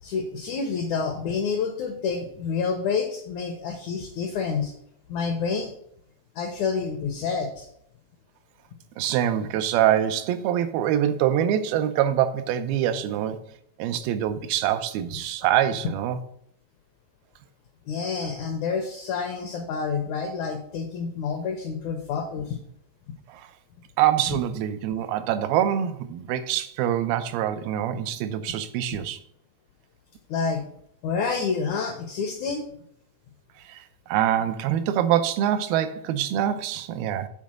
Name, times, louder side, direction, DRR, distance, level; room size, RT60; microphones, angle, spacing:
voice 1, 0.0-4.7 5.1-5.7 6.3-7.7 17.8-22.6 24.3-24.4 30.3-30.7 31.0-32.6, left 5 dB, 80° left, 1.7 m, -28 dB
voice 2, 9.0-13.4 13.8-16.2 23.3-23.5 24.0-29.2 33.7-33.8 34.1-37.3, right 11 dB, 85° right, 2.5 m, -24 dB
7.4 x 4.5 x 6.1 m
omnidirectional pair, 4.3 m